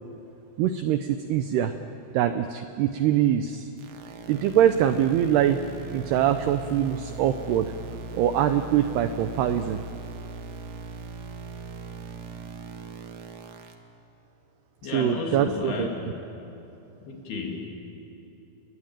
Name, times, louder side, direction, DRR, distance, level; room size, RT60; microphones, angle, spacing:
voice 1, 0.6-1.7 2.1-3.7 4.3-5.6 5.9-7.7 8.1-9.8 14.9-15.9, right 10 dB, 90° right, 9 dB, 2.3 m, -23 dB
sound 1, 3.8-13.7, right 3 dB, 65° right, 2.4 m, -39 dB
voice 2, 14.8-16.2 17.1-17.7, left 4 dB, 55° left, 1 dB, 4.3 m, -32 dB
29.5 x 21.0 x 9.0 m, 2.8 s
omnidirectional pair, 5.7 m